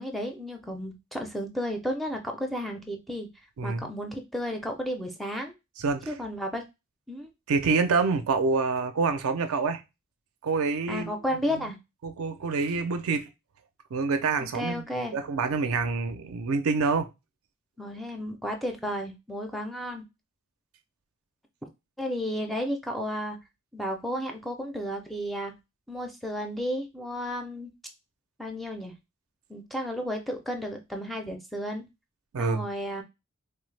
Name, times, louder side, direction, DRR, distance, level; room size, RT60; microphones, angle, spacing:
voice 1, 0.0-3.3 3.6-5.5 6.1-6.6 7.1-7.3 10.9-11.7 14.4-15.1 17.8-20.0 22.0-23.4 23.7-25.5 25.9-27.7 28.4-28.9 29.5-31.8 32.4-33.0, equal, ahead, 0.4 m, -33 dB
voice 2, 3.6-3.9 5.8-6.1 7.5-9.8 10.4-11.1 11.5-11.6 12.0-13.3 13.9-17.1 32.3-32.6, right 4 dB, 70° right, 0.4 m, -27 dB
3.3 x 2.0 x 3.2 m
head